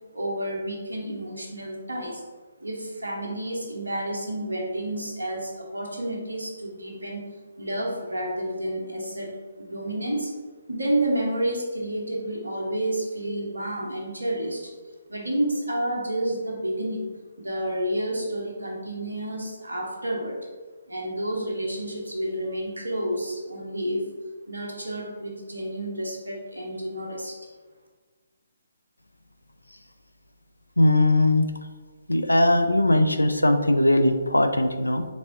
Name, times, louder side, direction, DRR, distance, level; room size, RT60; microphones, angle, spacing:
voice 1, 0.1-2.2 2.6-7.2 7.6-9.3 9.6-10.3 10.7-14.7 15.1-17.0 17.4-20.4 20.9-24.1 24.5-27.4, right 1 dB, 75° right, 0 dB, 1.1 m, -30 dB
voice 2, 30.8-31.5 32.1-35.1, left 1 dB, 80° left, 8 dB, 0.4 m, -20 dB
4.1 x 3.4 x 3.8 m, 1.4 s
figure-of-eight pair, 140°, 0 cm